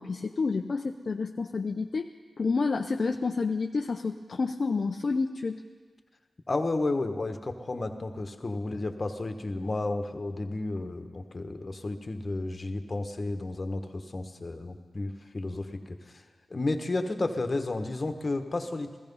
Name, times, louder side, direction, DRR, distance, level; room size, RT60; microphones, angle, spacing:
voice 1, 0.0-2.1 2.4-5.6, left 4 dB, 55° left, 4 dB, 0.6 m, -29 dB
voice 2, 6.5-16.2 16.5-19.0, left 2 dB, 40° left, 6 dB, 1.3 m, -32 dB
15.5 x 14.5 x 5.5 m, 1.5 s
cardioid pair, 45°, 0 cm